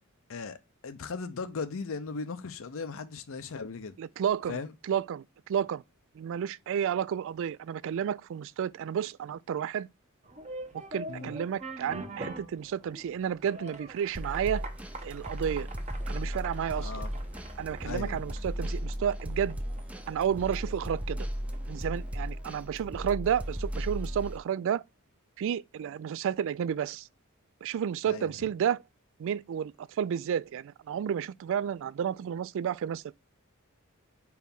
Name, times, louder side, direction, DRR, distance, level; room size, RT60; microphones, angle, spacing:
voice 1, 0.3-4.0 4.5-4.7 11.1-11.4 16.8-17.1 17.8-18.2 28.1-28.3, left 4 dB, 70° left, 0.6 m, -38 dB
voice 2, 4.0-4.6 4.8-5.8 6.2-9.9 10.7-14.6 15.0-15.7 16.1-16.9 17.6-19.6 20.1-21.3 21.7-24.8 25.4-27.1 27.6-28.8 29.2-33.1, right 8 dB, 65° right, 0.3 m, -31 dB
sound 1, 10.2-23.0, right 2 dB, 35° right, 1.0 m, -46 dB
sound 2, 14.1-24.4, equal, 5° right, 0.5 m, -36 dB
4.7 x 4.5 x 5.3 m
head